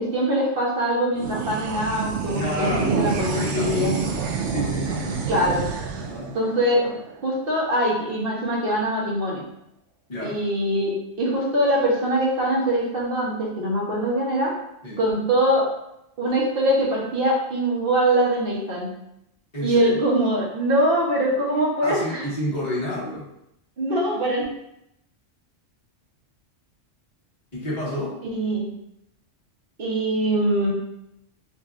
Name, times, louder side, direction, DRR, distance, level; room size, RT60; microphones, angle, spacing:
voice 1, 0.0-3.9 5.3-5.6 6.3-6.9 7.2-9.4 10.2-10.9 11.2-14.5 15.0-15.7 16.2-18.9 19.6-22.2 23.8-24.4 28.2-28.7 29.8-30.7, right 1 dB, 50° right, -3 dB, 1.1 m, -23 dB
sound 1, 1.1-7.9, right 6 dB, 75° right, 0.9 m, -28 dB
voice 2, 2.3-5.3 6.0-6.3 10.1-10.4 14.8-15.0 19.5-19.9 21.8-23.3 27.5-28.2, equal, 35° left, -8 dB, 1.4 m, -30 dB
5.0 x 2.6 x 2.4 m, 0.81 s
omnidirectional pair, 1.3 m